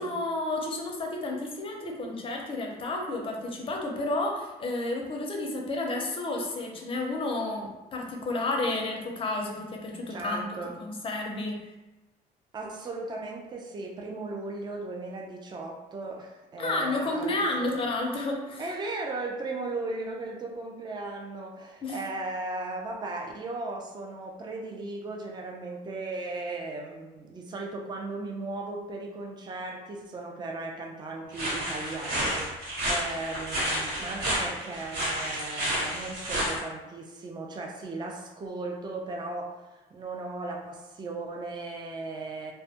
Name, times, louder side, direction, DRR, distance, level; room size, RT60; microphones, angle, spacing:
voice 1, 0.0-11.7 16.6-18.6 21.8-22.0, left 2 dB, 30° left, 1 dB, 0.5 m, -31 dB
voice 2, 10.1-10.8 12.5-17.7 18.6-42.5, right 2 dB, 25° right, 0 dB, 0.4 m, -37 dB
sound 1, 31.3-36.6, equal, 65° right, 1.1 m, -30 dB
2.2 x 2.1 x 2.7 m, 1.1 s
cardioid pair, 110°, 17 cm